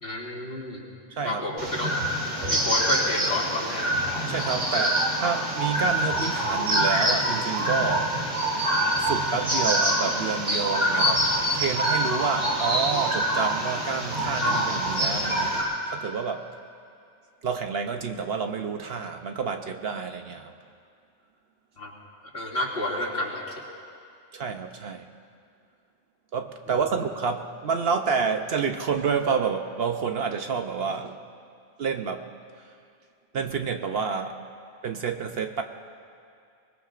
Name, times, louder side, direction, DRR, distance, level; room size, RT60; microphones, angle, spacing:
voice 1, 0.0-0.8 1.2-1.9 2.5-3.9 21.8-21.9 22.3-23.4, left 1 dB, 60° left, -4 dB, 2.9 m, -30 dB
voice 2, 1.1-1.4 4.3-8.1 9.0-16.5 17.4-20.5 24.3-25.1 26.3-31.2 31.8-32.3 33.3-34.4 34.8-35.6, right 5 dB, 60° right, 6 dB, 0.9 m, -29 dB
sound 1, 1.6-15.6, right 1 dB, 80° right, 3.2 m, -25 dB
24.0 x 20.5 x 2.5 m, 2.4 s
omnidirectional pair, 1.2 m